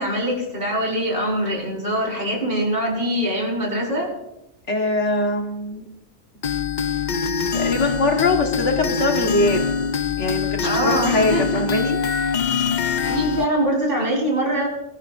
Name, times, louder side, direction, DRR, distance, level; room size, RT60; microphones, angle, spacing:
voice 1, 0.0-4.1 10.6-11.6 13.0-14.7, right 1 dB, 50° right, -2 dB, 5.1 m, -23 dB
voice 2, 4.7-5.8 7.1-9.7 10.2-12.0, left 2 dB, 75° left, 3 dB, 1.9 m, -22 dB
sound 1, 6.4-13.5, left 6 dB, 45° left, 0.7 m, -23 dB
22.0 x 13.0 x 2.6 m, 0.89 s
omnidirectional pair, 1.2 m